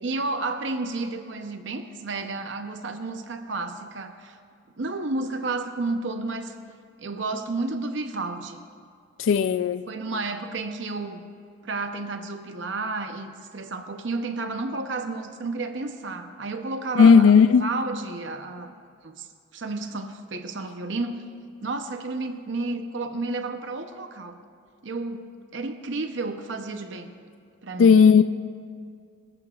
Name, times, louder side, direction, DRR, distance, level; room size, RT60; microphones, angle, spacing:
voice 1, 0.0-4.4 4.8-6.5 7.0-8.6 9.9-11.2 11.6-18.7 19.0-21.2 21.6-24.4 24.8-25.3 25.5-27.1 27.6-28.0, right 3 dB, 65° right, 7 dB, 0.7 m, -31 dB
voice 2, 9.2-9.8 17.0-17.6 27.8-28.2, left 6 dB, 80° left, 10 dB, 0.3 m, -15 dB
23.0 x 14.0 x 2.4 m, 2.2 s
head